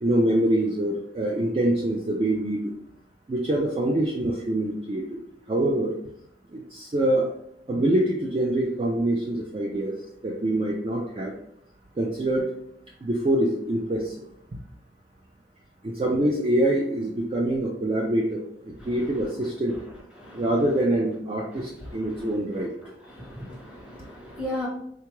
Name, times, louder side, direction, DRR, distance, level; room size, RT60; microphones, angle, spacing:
voice 1, 0.0-2.7 3.3-5.2 5.5-5.9 6.5-7.3 7.7-10.0 10.2-11.3 12.0-12.5 13.0-14.2 14.5-14.6 15.8-19.8 20.3-22.7, right 1 dB, 30° right, -1 dB, 0.3 m, -25 dB
voice 2, 20.2-20.5 21.5-22.3 23.1-24.7, left 1 dB, 5° right, -4 dB, 0.9 m, -37 dB
3.6 x 2.3 x 3.0 m, 0.72 s
head